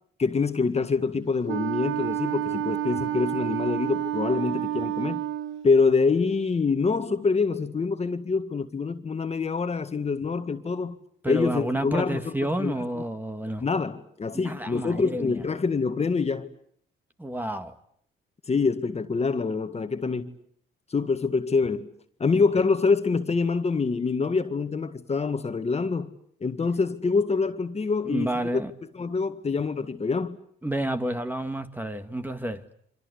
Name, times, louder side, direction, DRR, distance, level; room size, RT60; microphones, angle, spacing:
voice 1, 0.2-5.2 5.6-11.0 11.2-12.3 12.6-12.7 13.6-16.5 18.5-20.3 20.9-21.9 22.2-26.1 26.4-28.6 28.9-30.4, left 4 dB, 30° left, 1.9 m, -25 dB
Wind instrument woodwind instrument, 1.5-5.7, right 12 dB, 75° right, 1.4 m, -29 dB
voice 2, 11.2-13.6 14.3-15.4 17.2-17.7 19.3-19.4 22.3-22.4 28.0-28.7 30.6-32.6, right 1 dB, 10° right, 1.9 m, -30 dB
28.0 x 25.5 x 8.2 m
cardioid pair, 90°, 20 cm